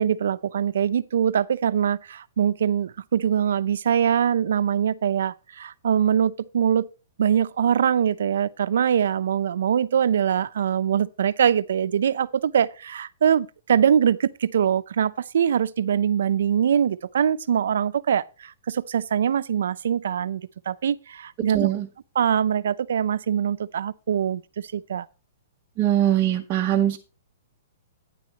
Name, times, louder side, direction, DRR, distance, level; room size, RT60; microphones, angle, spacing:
voice 1, 0.0-6.9 7.2-21.7 22.1-24.4 24.7-25.1, right 8 dB, 70° right, 0.6 m, -23 dB
voice 2, 21.5-21.9 25.8-27.0, right 11 dB, 20° right, 0.7 m, -21 dB
11.5 x 10.0 x 2.9 m
hypercardioid pair, 175°, 0 cm